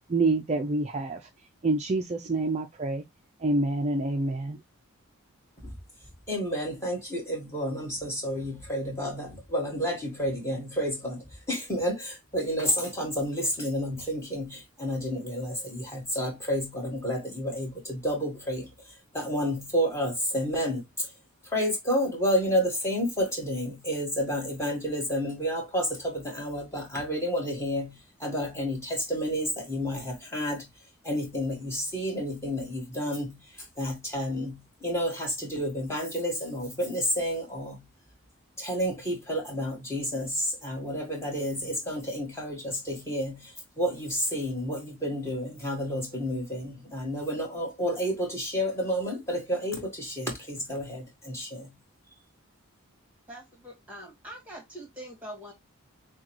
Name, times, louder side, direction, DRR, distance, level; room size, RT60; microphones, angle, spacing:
voice 1, 0.1-1.2 1.6-3.0 3.4-4.6, right 2 dB, 30° right, 0.4 m, -27 dB
voice 2, 6.3-18.7 19.1-21.1 21.5-30.7 31.0-33.4 33.8-37.8 38.6-51.7, equal, 10° left, 1.7 m, -30 dB
voice 3, 53.3-55.5, right 1 dB, 5° right, 1.8 m, -43 dB
6.1 x 2.3 x 3.0 m
head